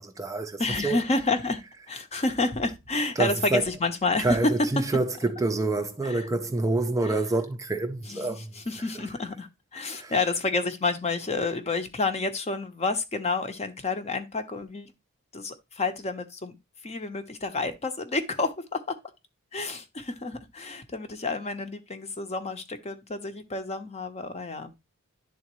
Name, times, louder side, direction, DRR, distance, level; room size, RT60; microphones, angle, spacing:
voice 1, 0.0-1.0 3.2-3.6 4.2-8.6 8.9-9.0 9.9-10.2, right 2 dB, 15° right, 0.4 m, -27 dB
voice 2, 0.6-4.4 6.0-6.2 7.0-7.1 8.1-8.4 8.7-14.9 15.3-16.6 16.8-19.0 19.5-24.7, left 3 dB, 30° left, 0.7 m, -29 dB
10.5 x 3.7 x 3.0 m
head